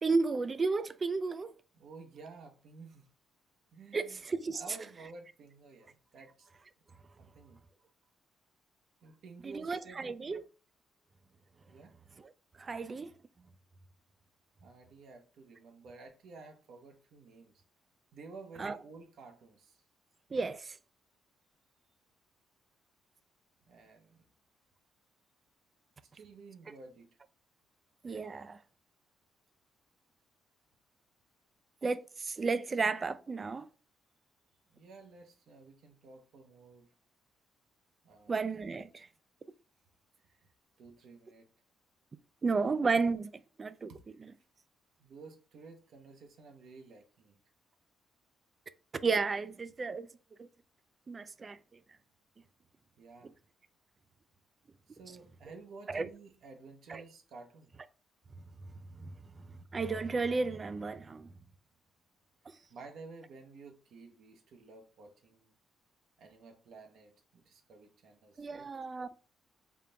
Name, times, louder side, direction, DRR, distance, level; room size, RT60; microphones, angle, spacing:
voice 1, 0.0-1.5 3.9-4.6 9.4-10.4 12.6-13.1 18.6-18.8 20.3-20.8 28.0-28.6 31.8-33.7 38.3-39.1 42.4-43.3 43.6-43.9 49.0-50.1 51.1-51.6 55.9-56.1 56.9-57.0 59.0-59.1 59.7-61.3 68.4-69.1, right 4 dB, 35° right, 0.3 m, -32 dB
voice 2, 1.7-3.1 3.7-4.2 4.5-6.5 7.2-7.6 9.0-10.4 11.7-11.9 14.6-17.5 18.1-19.8 23.7-24.3 26.0-27.2 34.7-36.9 38.0-38.4 40.3-40.5 40.8-41.5 43.9-44.3 45.0-47.4 53.0-53.3 54.9-57.7 62.7-65.5 66.2-68.7, right 4 dB, 70° right, 0.7 m, -52 dB
3.6 x 2.3 x 3.8 m
cardioid pair, 90°, 0 cm